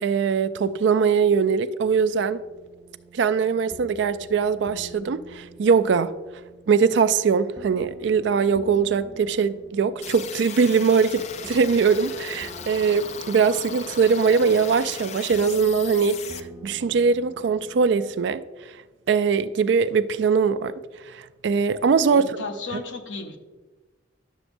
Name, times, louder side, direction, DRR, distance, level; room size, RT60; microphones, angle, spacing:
voice 1, 0.0-2.4 3.1-6.1 6.7-16.2 16.6-18.4 19.1-20.7 21.1-22.3 22.7-22.8, right 5 dB, 65° right, 0.4 m, -21 dB
sound 1, 1.8-18.2, right 1 dB, 15° right, 0.6 m, -47 dB
sound 2, 10.0-16.4, left 7 dB, 35° left, 0.3 m, -37 dB
voice 2, 22.1-23.4, left 3 dB, 80° left, 0.9 m, -34 dB
11.0 x 6.9 x 2.6 m
head